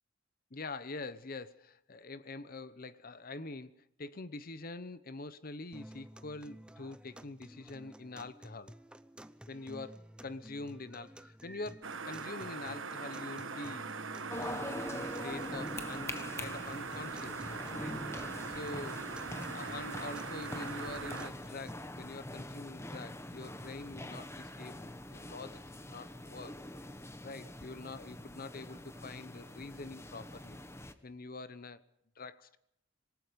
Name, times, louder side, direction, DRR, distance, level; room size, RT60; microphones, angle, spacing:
voice 1, 0.5-8.7 9.5-13.9 14.4-16.1 16.4-18.0 18.5-19.0 19.5-26.6 27.2-30.6 31.0-31.8 32.2-32.6, left 3 dB, 45° left, 0.9 m, -45 dB
sound 1, 5.7-21.7, equal, 5° right, 0.7 m, -52 dB
sound 2, 11.8-21.3, right 5 dB, 75° right, 1.4 m, -41 dB
sound 3, 14.3-30.9, left 1 dB, 15° left, 1.2 m, -44 dB
26.5 x 19.0 x 5.3 m
head